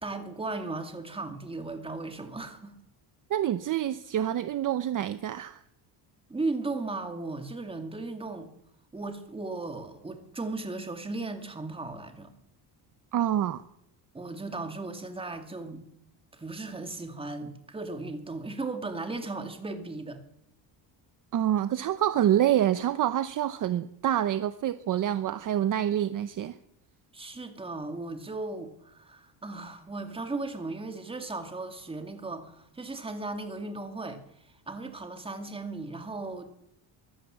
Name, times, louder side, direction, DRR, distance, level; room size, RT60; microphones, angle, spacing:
voice 1, 0.0-2.7 6.3-8.5 8.9-12.3 14.1-15.9 16.3-20.2 27.1-34.2 34.7-36.4, right 3 dB, 10° right, 2.2 m, -36 dB
voice 2, 3.3-5.6 13.1-13.6 21.3-26.6, right 11 dB, 45° right, 0.7 m, -27 dB
23.0 x 16.0 x 7.5 m
cardioid pair, 180°, 46 cm